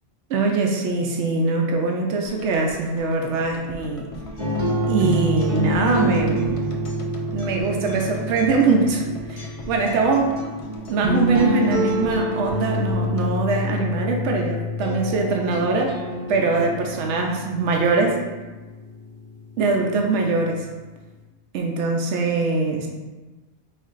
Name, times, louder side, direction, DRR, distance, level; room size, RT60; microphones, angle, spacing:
voice 1, 0.3-4.1 4.9-6.6 7.3-10.4 10.9-16.0 16.3-18.2 19.6-20.6 21.5-22.9, right 3 dB, 85° right, 1 dB, 0.9 m, -22 dB
sound 1, 2.2-14.4 14.7-14.8, left 2 dB, 55° left, 0.3 m, -42 dB
Acoustic guitar, 4.1-12.1, right 2 dB, 75° left, 1.0 m, -41 dB
sound 2, 4.4-20.5, left 1 dB, 30° right, 0.7 m, -27 dB
4.4 x 3.2 x 2.4 m, 1.2 s
omnidirectional pair, 1.1 m